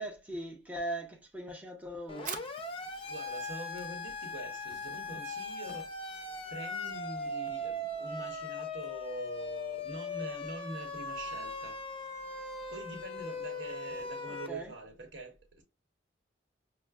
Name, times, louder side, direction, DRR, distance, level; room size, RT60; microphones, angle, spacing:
voice 1, 0.0-2.4 14.3-14.7, right 1 dB, 10° right, 0.7 m, -40 dB
Siren, 2.1-14.5, left 2 dB, 30° left, 0.5 m, -39 dB
Fire, 2.1-9.3, right 6 dB, 45° right, 0.5 m, -51 dB
voice 2, 3.1-6.1 6.5-12.2 12.7-15.6, right 2 dB, 80° right, 1.1 m, -44 dB
5.6 x 2.1 x 2.3 m
head